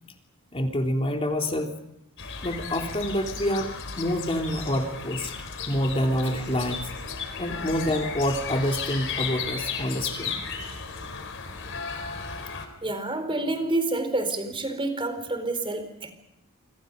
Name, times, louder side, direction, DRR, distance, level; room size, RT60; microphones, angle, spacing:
voice 1, 0.5-1.7 2.4-3.7 4.0-5.3 5.6-6.9 7.4-10.4, equal, 25° left, 2 dB, 3.5 m, -27 dB
sound 1, 2.2-12.7, left 5 dB, 60° left, 4.5 m, -35 dB
voice 2, 12.8-16.1, right 2 dB, 25° right, 8 dB, 4.3 m, -28 dB
27.5 x 26.0 x 5.4 m, 0.81 s
head